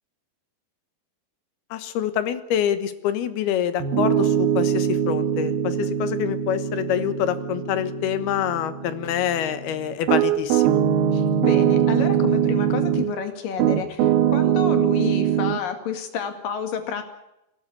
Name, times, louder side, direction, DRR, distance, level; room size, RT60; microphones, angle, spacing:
voice 1, 1.7-10.8, left 10 dB, 80° left, 11 dB, 3.3 m, -26 dB
Piano, 3.8-13.2 13.6-15.6, right 9 dB, 75° right, 2.9 m, -22 dB
voice 2, 11.1-17.0, left 7 dB, 65° left, 6 dB, 3.8 m, -30 dB
23.0 x 17.5 x 8.6 m, 0.89 s
omnidirectional pair, 4.4 m